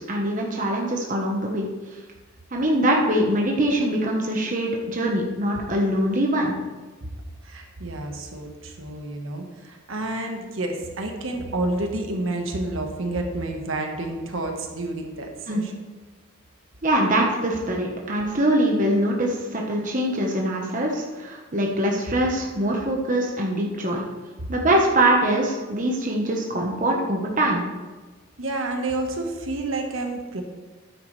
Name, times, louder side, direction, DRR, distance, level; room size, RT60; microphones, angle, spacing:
voice 1, 0.0-1.7 2.5-6.5 15.5-15.6 16.8-24.0 24.5-27.6, right 1 dB, 40° right, -1 dB, 1.2 m, -23 dB
voice 2, 7.4-15.7 28.4-30.4, right 2 dB, 70° right, 3 dB, 1.4 m, -29 dB
12.5 x 9.5 x 3.3 m, 1.3 s
head